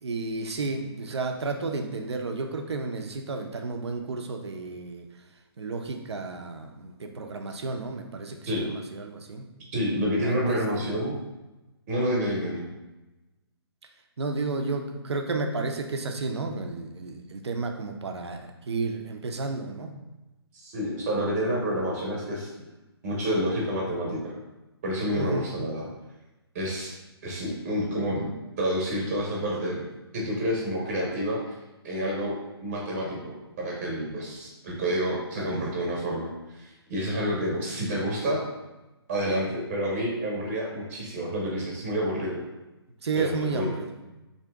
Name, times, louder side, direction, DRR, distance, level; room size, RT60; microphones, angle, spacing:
voice 1, 0.0-5.1 5.6-9.5 10.2-10.9 14.2-19.9 25.2-25.5 35.4-35.6 43.0-43.9, right 3 dB, 90° right, 4 dB, 0.6 m, -32 dB
voice 2, 9.7-11.1 11.9-12.6 20.5-22.5 23.0-24.3 24.8-25.9 26.5-26.9 27.2-28.3 28.6-29.8 30.1-31.4 31.8-36.3 36.5-38.5 39.1-42.4 43.2-43.7, equal, 30° right, -3 dB, 0.8 m, -29 dB
3.9 x 2.7 x 3.4 m, 1.0 s
hypercardioid pair, 165°, 14 cm